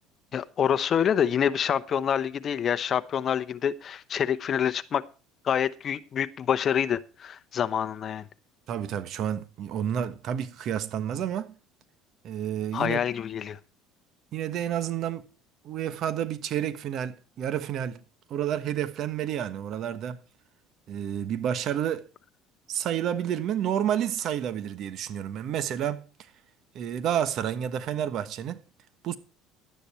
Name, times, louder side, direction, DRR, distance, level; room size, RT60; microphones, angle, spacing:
voice 1, 0.3-5.0 5.4-8.2 12.7-13.6, left 8 dB, 45° left, 0.8 m, -26 dB
voice 2, 8.7-11.5 12.2-13.0 14.3-15.3 15.6-18.0 18.3-20.2 20.9-22.1 22.7-26.0 26.7-28.6 29.0-29.2, right 10 dB, 55° right, 1.3 m, -30 dB
12.0 x 9.9 x 4.4 m
supercardioid pair, 100°, 0 cm